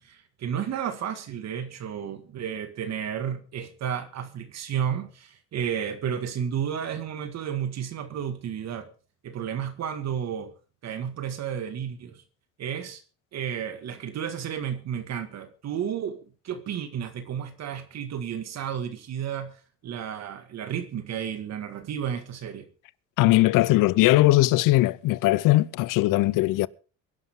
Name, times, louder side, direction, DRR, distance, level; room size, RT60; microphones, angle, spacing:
voice 1, 0.0-8.9 9.2-10.5 10.8-12.2 12.6-13.0 13.3-22.7, right 8 dB, 55° right, 1.9 m, -32 dB
voice 2, 23.2-26.7, left 18 dB, 80° left, 0.7 m, -20 dB
24.0 x 11.0 x 3.7 m
cardioid pair, 135°, 32 cm